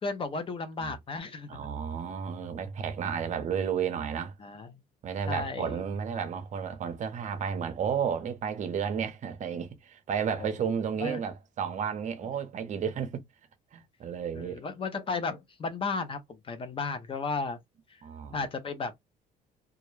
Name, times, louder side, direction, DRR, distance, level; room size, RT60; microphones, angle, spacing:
voice 1, 0.0-1.6 4.4-4.8 5.3-5.8 10.4-10.5 11.0-11.2 14.3-17.6 17.9-18.0 18.3-18.9, left 4 dB, 30° left, 0.6 m, -34 dB
voice 2, 1.5-4.3 5.0-13.2 13.7-14.6 18.0-18.3, right 7 dB, 45° right, 0.6 m, -32 dB
2.3 x 2.1 x 3.1 m
cardioid pair, 110°, 17 cm